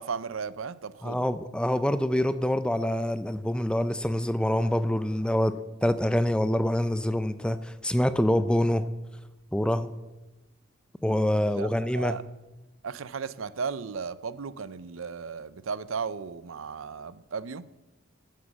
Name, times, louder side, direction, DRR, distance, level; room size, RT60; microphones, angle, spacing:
voice 1, 0.0-1.2 11.4-12.2 12.8-17.7, right 5 dB, 80° right, 0.6 m, -35 dB
voice 2, 1.0-5.5 5.8-8.8 9.5-9.9 11.0-12.1, left 1 dB, 5° left, 0.4 m, -25 dB
11.0 x 9.5 x 7.3 m
head